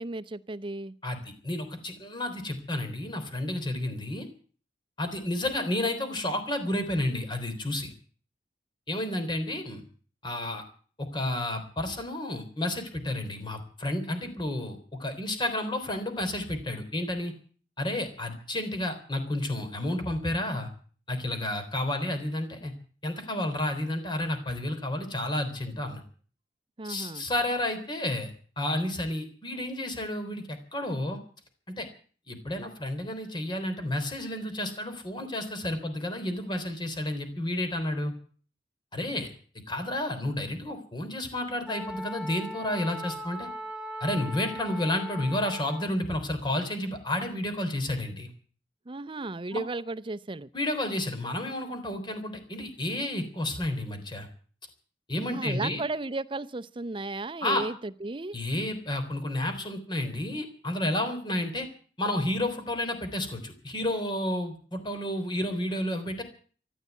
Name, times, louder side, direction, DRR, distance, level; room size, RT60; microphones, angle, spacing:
voice 1, 0.0-0.9 26.8-27.3 48.9-50.5 55.2-58.4, right 2 dB, 30° right, 14 dB, 0.7 m, -34 dB
voice 2, 1.0-4.3 5.0-7.9 8.9-9.8 10.2-10.6 11.0-17.3 17.8-20.7 21.1-22.7 23.0-26.0 26.8-28.3 28.6-31.2 31.7-31.9 32.3-38.1 38.9-39.3 39.7-43.5 44.0-48.3 49.5-49.6 50.5-54.3 55.1-55.8 57.4-57.7 58.3-61.7 62.0-66.2, left 1 dB, 25° left, 7 dB, 3.6 m, -31 dB
Wind instrument woodwind instrument, 41.7-45.9, left 1 dB, 5° right, 2.6 m, -39 dB
14.5 x 12.0 x 8.2 m, 0.44 s
head